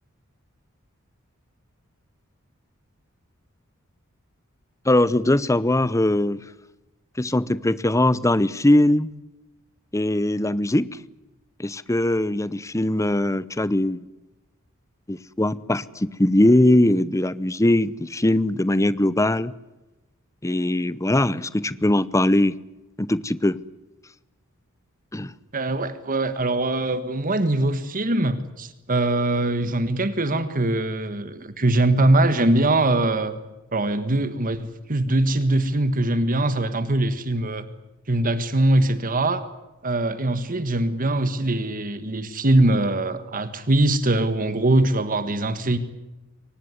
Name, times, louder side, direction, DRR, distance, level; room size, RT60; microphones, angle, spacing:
voice 1, 4.8-6.4 7.2-9.1 9.9-11.0 11.6-14.0 15.1-19.5 20.4-22.5 23.0-23.6 25.1-25.3, left 1 dB, 15° left, 0.8 m, -21 dB
voice 2, 25.5-33.4 33.7-37.7 38.1-39.5 39.8-45.8, right 2 dB, 40° right, 1.6 m, -22 dB
24.0 x 19.5 x 9.6 m
head